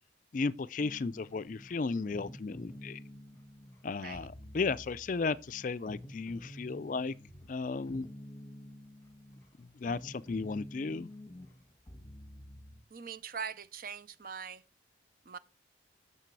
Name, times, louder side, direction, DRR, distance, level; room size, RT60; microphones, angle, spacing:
voice 1, 0.3-3.0 3.8-7.1 7.5-8.1 9.6-11.1, left 4 dB, 45° left, 0.4 m, -34 dB
sound 1, 0.8-12.8, left 1 dB, 15° left, 1.5 m, -50 dB
voice 2, 12.9-14.6 15.3-15.4, right 6 dB, 50° right, 0.6 m, -42 dB
11.0 x 6.7 x 4.7 m
head